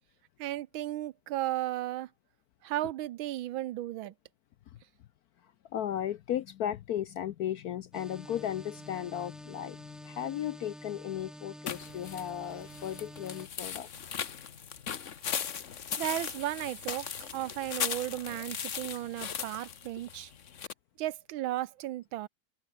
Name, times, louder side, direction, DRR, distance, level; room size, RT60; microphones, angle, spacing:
voice 1, 0.4-2.1 2.6-4.1 16.0-20.3 21.0-22.3, right 14 dB, 85° right, 1.5 m, -35 dB
voice 2, 5.7-13.9, left 10 dB, 70° left, 0.9 m, -35 dB
sound 1, 7.9-13.5, equal, ahead, 1.8 m, -48 dB
sound 2, 11.7-20.7, left 7 dB, 45° left, 1.3 m, -38 dB
sound 3, 15.7-19.8, right 2 dB, 35° right, 4.5 m, -57 dB
omnidirectional pair, 2.1 m